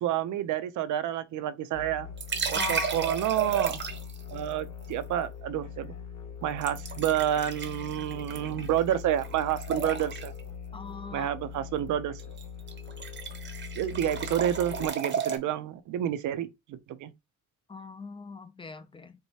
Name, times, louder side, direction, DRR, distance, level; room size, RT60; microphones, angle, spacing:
voice 1, 0.0-2.1 2.5-3.8 4.3-5.9 6.4-10.3 11.1-12.2 13.8-17.1, right 11 dB, 75° right, 0.5 m, -29 dB
sound 1, 1.7-14.9, left 7 dB, 70° left, 1.1 m, -42 dB
sound 2, 2.2-4.2 6.6-9.0 9.2-10.4 12.2-12.4 12.7-15.4, right 6 dB, 35° right, 0.7 m, -33 dB
voice 2, 2.5-2.9 10.7-11.3 17.7-19.1, left 3 dB, 20° left, 0.4 m, -39 dB
4.6 x 2.2 x 2.7 m
cardioid pair, 90°, 30 cm